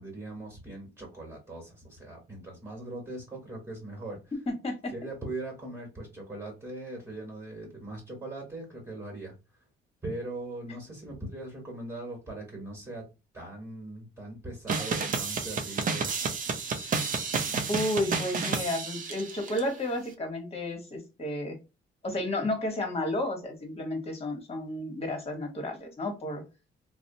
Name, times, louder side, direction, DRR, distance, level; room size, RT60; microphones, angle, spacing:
voice 1, 0.0-4.2 4.9-9.3 10.0-13.1 13.3-16.1, right 2 dB, 15° right, -2 dB, 1.5 m, -40 dB
voice 2, 4.5-4.9 17.7-21.6 22.0-26.4, left 1 dB, 30° left, 3 dB, 1.2 m, -32 dB
sound 1, 14.7-19.6, right 5 dB, 45° right, 0.5 m, -31 dB
2.6 x 2.0 x 2.6 m, 0.28 s
cardioid pair, 90°, 20 cm